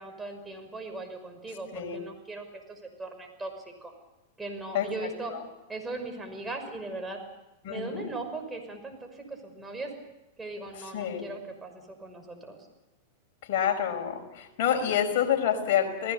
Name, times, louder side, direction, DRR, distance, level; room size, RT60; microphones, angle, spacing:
voice 1, 0.0-3.9 4.4-5.3 5.7-7.2 7.7-9.9 10.4-12.6, right 2 dB, 10° right, 4 dB, 6.0 m, -39 dB
voice 2, 7.6-8.1 10.7-11.2 13.4-16.1, left 9 dB, 60° left, 3 dB, 5.3 m, -28 dB
29.5 x 19.0 x 7.0 m, 0.94 s
hypercardioid pair, 110°, 0 cm